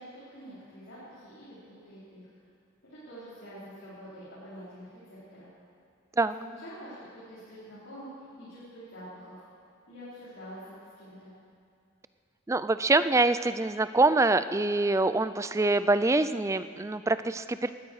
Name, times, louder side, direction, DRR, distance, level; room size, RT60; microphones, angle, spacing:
voice 1, 0.0-2.3 2.9-5.5 6.2-9.4 9.9-10.6 11.0-11.3, equal, 65° left, -12 dB, 4.9 m, -46 dB
voice 2, 12.5-17.7, right 2 dB, 15° right, 13 dB, 0.3 m, -25 dB
19.5 x 13.0 x 4.9 m, 2.3 s
head